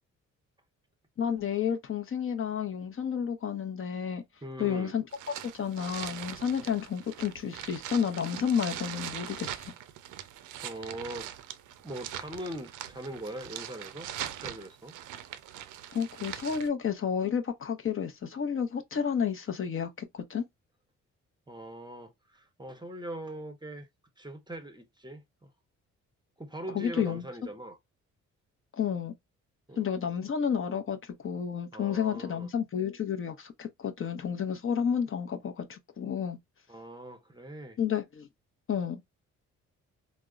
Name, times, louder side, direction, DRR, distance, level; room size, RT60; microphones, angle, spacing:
voice 1, 1.2-4.2 4.6-5.0 5.5-9.7 15.9-20.4 26.7-27.2 28.8-29.1 29.8-36.4 37.8-38.3 38.7-39.1, left 7 dB, 45° left, 0.7 m, -31 dB
voice 2, 4.4-4.9 10.6-11.5 11.8-14.1 14.4-14.9 21.5-23.9 24.2-25.5 26.4-27.8 29.7-29.8 31.7-32.5 36.7-37.8, right 1 dB, 15° right, 0.7 m, -41 dB
sound 1, 5.1-16.7, right 11 dB, 80° right, 0.5 m, -42 dB
3.4 x 2.1 x 2.3 m
cardioid pair, 75°, 30 cm